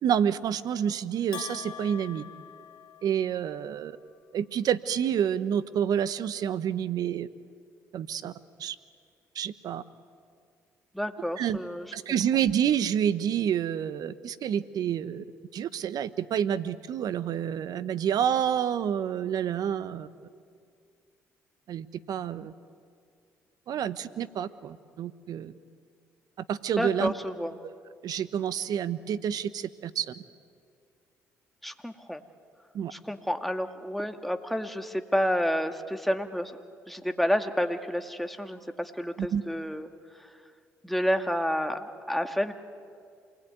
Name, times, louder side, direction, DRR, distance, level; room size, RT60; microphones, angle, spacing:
voice 1, 0.0-2.2 3.0-4.0 4.3-7.3 7.9-8.3 8.6-8.8 9.3-9.8 11.4-11.6 11.9-15.2 15.5-20.1 21.7-22.5 23.7-25.5 26.5-27.1 27.6-27.7 28.0-30.1 32.7-32.9 39.2-39.4, right 9 dB, 65° right, 14 dB, 1.1 m, -28 dB
Bell, 1.3-3.5, left 10 dB, 75° left, 1.3 m, -43 dB
voice 2, 10.9-11.9 26.8-27.6 31.6-32.2 32.9-36.5 36.9-39.9 40.8-42.5, equal, ahead, 6 dB, 2.1 m, -29 dB
28.0 x 20.5 x 9.3 m, 2.2 s
hypercardioid pair, 55°, 7 cm